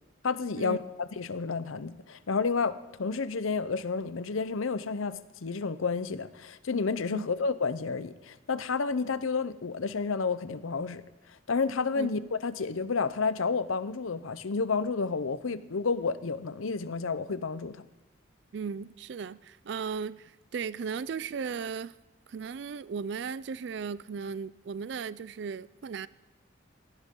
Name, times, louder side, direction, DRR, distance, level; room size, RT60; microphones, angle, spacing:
voice 1, 0.2-11.0 11.5-17.7, left 4 dB, 90° left, 14 dB, 0.7 m, -30 dB
voice 2, 18.5-21.9 22.3-26.1, right 6 dB, 60° right, 18 dB, 0.4 m, -36 dB
18.5 x 15.0 x 3.8 m, 1.1 s
head